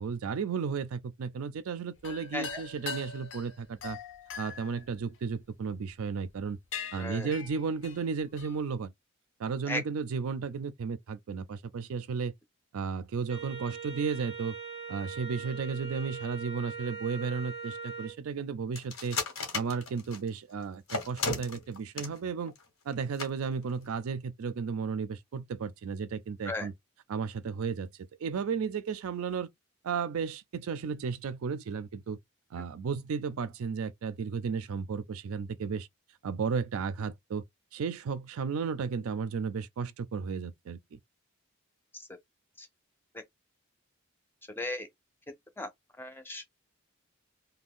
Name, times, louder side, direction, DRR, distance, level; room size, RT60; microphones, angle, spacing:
voice 1, 0.0-4.0 4.4-6.6 6.9-8.9 9.4-12.3 12.7-14.5 14.9-19.2 19.5-22.5 22.9-26.7 27.1-29.5 29.8-32.2 32.5-35.9 36.2-37.4 37.7-41.0, right 5 dB, 75° right, 0.4 m, -34 dB
sound 1, 2.0-5.7 6.3-6.4 6.7-8.6, left 6 dB, 55° left, 0.6 m, -42 dB
voice 2, 7.0-7.3 9.7-9.8 26.4-26.7 41.9-42.1 42.6-42.7 44.6-44.9 45.6-45.7 46.0-46.4, left 2 dB, 10° left, 0.5 m, -36 dB
Wind instrument woodwind instrument, 13.3-18.2, right 5 dB, 30° right, 0.6 m, -41 dB
sound 2, 18.7-20.3 20.9-22.2 22.5-22.6 22.9-23.0 23.2-23.3 23.7-23.9, left 4 dB, 75° left, 1.1 m, -34 dB
2.5 x 2.2 x 3.5 m
head